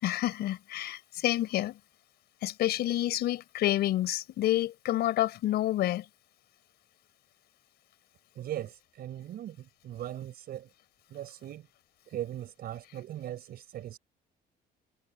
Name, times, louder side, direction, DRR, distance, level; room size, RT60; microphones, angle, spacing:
voice 1, 0.0-1.8 2.4-6.1, left 14 dB, 75° left, 5.3 m, -28 dB
voice 2, 8.4-10.7 11.1-11.7 12.1-14.0, right 12 dB, 65° right, 6.0 m, -39 dB
cardioid pair, 110°, 17 cm